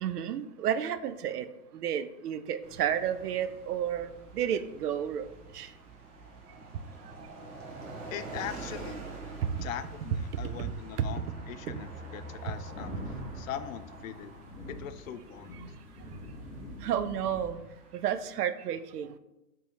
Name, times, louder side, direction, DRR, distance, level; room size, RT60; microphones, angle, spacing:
voice 1, 0.0-1.5 1.7-5.7 9.4-9.6 10.3-10.7 11.0-11.2 11.7-11.8 16.8-17.6 17.9-19.2, right 9 dB, 80° right, 12 dB, 0.6 m, -31 dB
sound 1, 2.6-18.3, right 3 dB, 50° right, 1.3 m, -46 dB
voice 2, 8.1-9.0 9.6-14.3 14.7-15.6, left 10 dB, 60° left, 12 dB, 0.5 m, -41 dB
sound 2, 12.4-17.5, left 1 dB, 15° left, 1.0 m, -44 dB
3.6 x 3.1 x 4.2 m, 0.94 s
hypercardioid pair, 130°, 45 cm